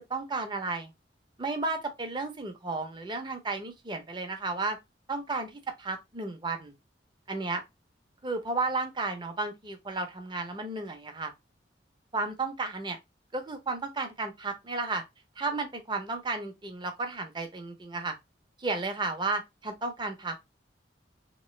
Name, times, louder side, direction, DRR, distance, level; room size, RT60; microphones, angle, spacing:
voice 1, 0.1-0.9 1.4-4.8 5.1-6.7 7.3-7.6 8.2-11.3 12.1-13.0 13.3-15.0 15.4-18.1 18.6-20.3, right 3 dB, 25° right, 0.6 m, -33 dB
3.0 x 3.0 x 3.1 m
head